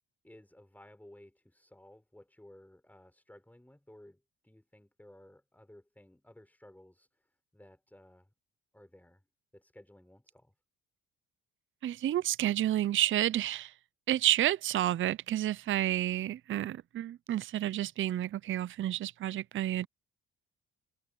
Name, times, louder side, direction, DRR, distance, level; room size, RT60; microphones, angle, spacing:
voice 1, 0.2-8.3 8.7-9.2 9.5-10.5, left 1 dB, 5° left, 5.2 m, -57 dB
voice 2, 11.8-13.7 14.1-19.9, right 13 dB, 40° right, 0.4 m, -30 dB
cardioid pair, 90°, 30 cm